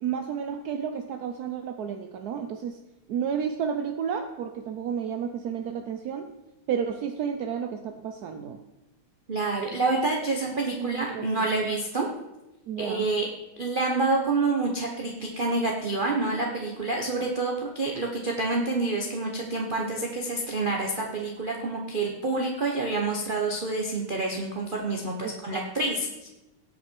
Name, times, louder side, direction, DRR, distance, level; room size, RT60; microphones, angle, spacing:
voice 1, 0.0-2.8 3.1-6.3 6.7-8.6 9.7-9.8 10.8-11.5 12.7-13.1 25.2-25.6, right 7 dB, 70° right, 7 dB, 0.9 m, -31 dB
voice 2, 9.3-12.1 12.8-13.3 13.6-26.3, right 3 dB, 35° right, -1 dB, 1.0 m, -28 dB
17.5 x 6.0 x 4.6 m, 1.0 s
omnidirectional pair, 2.4 m